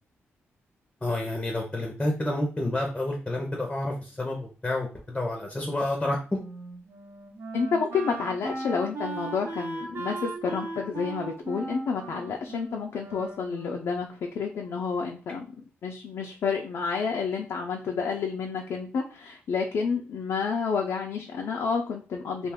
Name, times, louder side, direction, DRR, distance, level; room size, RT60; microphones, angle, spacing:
voice 1, 1.0-6.4, left 1 dB, 15° left, 0 dB, 0.6 m, -29 dB
Wind instrument woodwind instrument, 6.3-14.1, right 3 dB, 55° right, 0.8 m, -37 dB
voice 2, 7.5-15.5 15.8-22.5, left 5 dB, 70° left, 1 dB, 0.4 m, -30 dB
2.4 x 2.3 x 3.4 m, 0.37 s
cardioid pair, 105°, 5 cm